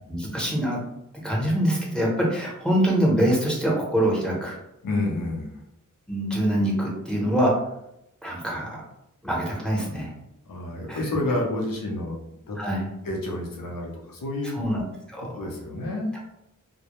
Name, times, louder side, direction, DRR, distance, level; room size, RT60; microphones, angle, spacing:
voice 1, 0.1-0.8 1.2-4.6 6.1-7.5 8.2-8.8 9.2-10.1 10.9-11.2 12.6-12.9 14.5-14.8 15.1-15.4 16.1-16.2, equal, ahead, -4 dB, 0.7 m, -24 dB
voice 2, 4.8-5.5 10.5-12.2 12.5-12.6 13.0-14.5 15.3-16.1, left 2 dB, 85° left, -1 dB, 0.6 m, -29 dB
2.1 x 2.0 x 2.9 m, 0.82 s
wide cardioid pair, 75°, 33 cm